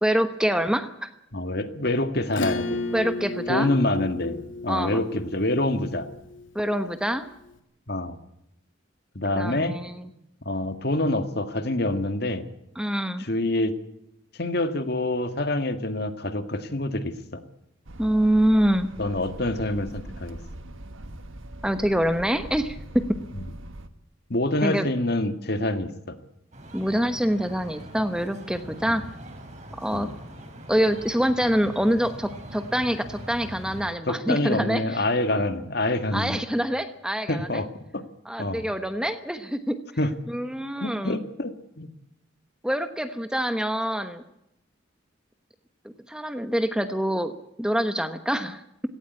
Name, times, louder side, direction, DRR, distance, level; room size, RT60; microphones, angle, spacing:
voice 1, 0.0-1.1 2.9-3.7 4.7-5.1 6.5-7.2 9.4-10.1 12.8-13.3 18.0-18.9 21.6-23.0 24.6-24.9 26.7-29.0 29.8-30.1 30.7-35.0 36.1-37.6 38.2-39.8 40.3-41.2 42.6-44.2 46.1-47.3 47.6-48.6, equal, 5° right, 9 dB, 1.1 m, -25 dB
voice 2, 1.3-2.8 3.5-6.1 7.9-8.2 9.2-9.8 10.5-12.5 13.2-13.7 14.4-17.4 19.0-20.4 24.3-26.2 28.9-29.1 29.9-30.1 34.0-36.4 37.3-37.7 37.9-38.0 38.4-38.7 40.0-40.1 40.8-41.9, left 1 dB, 50° left, 9 dB, 1.9 m, -26 dB
Acoustic guitar / Strum, 2.3-7.2, left 2 dB, 70° left, 2.8 m, -34 dB
sound 1, 17.9-23.9, right 1 dB, 80° right, 1.6 m, -41 dB
sound 2, 26.5-33.9, right 1 dB, 35° right, 4.6 m, -42 dB
17.5 x 17.0 x 9.7 m, 0.82 s
head